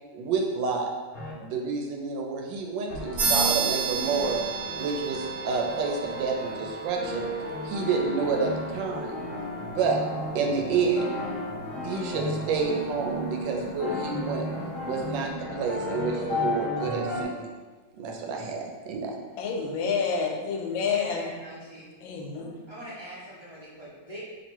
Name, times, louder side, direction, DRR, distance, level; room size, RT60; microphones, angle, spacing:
voice 1, 0.1-0.9 1.4-4.4 4.8-7.3 7.6-9.2 9.6-10.0 10.3-11.1 11.8-14.4 14.9-17.5 17.9-19.2, right 4 dB, 80° right, 1 dB, 1.3 m, -29 dB
sound 1, 1.1-1.3 2.9-17.2, left 1 dB, 60° left, 0.9 m, -34 dB
sound 2, 3.2-13.1, right 5 dB, 55° right, 1.0 m, -34 dB
voice 2, 19.4-21.3 22.0-22.7, left 5 dB, 85° left, 2 dB, 1.3 m, -29 dB
voice 3, 20.9-21.9 22.7-24.2, equal, 40° left, -10 dB, 0.4 m, -42 dB
3.0 x 2.8 x 4.4 m, 1.4 s
omnidirectional pair, 2.0 m